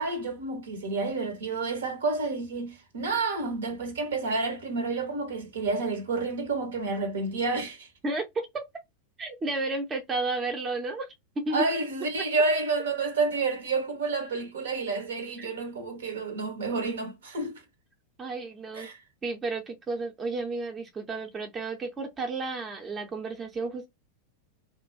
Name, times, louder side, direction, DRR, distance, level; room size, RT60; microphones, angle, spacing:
voice 1, 0.0-7.9 11.5-17.6 18.8-18.9, right 3 dB, 65° right, 0.7 m, -29 dB
voice 2, 8.0-8.7 9.2-11.6 12.2-12.3 15.4-15.5 18.2-18.9 19.2-23.9, right 3 dB, 20° right, 0.6 m, -32 dB
2.3 x 2.1 x 2.5 m
figure-of-eight pair, 90°, 0 cm